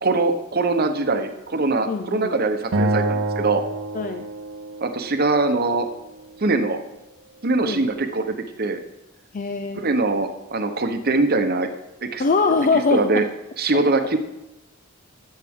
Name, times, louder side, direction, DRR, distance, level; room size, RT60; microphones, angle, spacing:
voice 1, 0.0-3.6 4.8-5.9 6.4-6.8 7.4-8.8 9.8-11.7 12.0-12.2 12.9-13.2 13.6-14.2, right 3 dB, 50° right, 7 dB, 1.0 m, -22 dB
voice 2, 1.9-2.4 3.9-4.3 7.6-7.8 9.3-9.9 12.2-13.3, left 4 dB, 40° left, 7 dB, 0.5 m, -22 dB
Acoustic guitar, 2.7-6.0, right 2 dB, 70° right, 0.7 m, -27 dB
13.0 x 7.5 x 3.7 m, 0.99 s
head